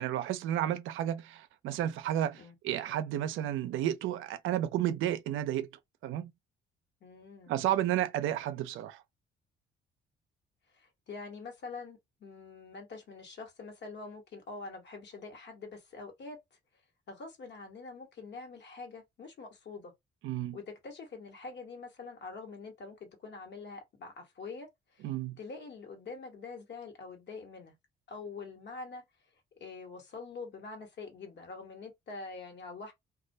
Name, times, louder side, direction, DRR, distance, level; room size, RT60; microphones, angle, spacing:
voice 1, 0.0-5.7 6.0-6.3 7.5-9.0 20.2-20.6 25.0-25.4, right 12 dB, 80° right, 0.4 m, -32 dB
voice 2, 7.0-7.5 10.7-16.6 17.1-19.9 20.5-27.8 28.1-29.0 29.6-32.9, left 4 dB, 60° left, 1.1 m, -45 dB
2.3 x 2.2 x 2.6 m
cardioid pair, 90°, 20 cm